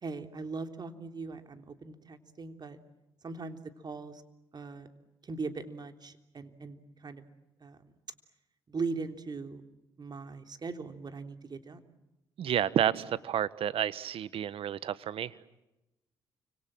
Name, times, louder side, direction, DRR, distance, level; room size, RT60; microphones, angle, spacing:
voice 1, 0.0-2.8 3.2-4.2 4.5-4.9 5.2-7.3 7.6-7.9 8.7-9.6 10.0-11.8, right 4 dB, 40° right, 7 dB, 3.3 m, -40 dB
voice 2, 12.4-15.6, right 10 dB, 65° right, 16 dB, 1.3 m, -30 dB
30.0 x 26.0 x 7.6 m, 0.97 s
hypercardioid pair, 50°, 10 cm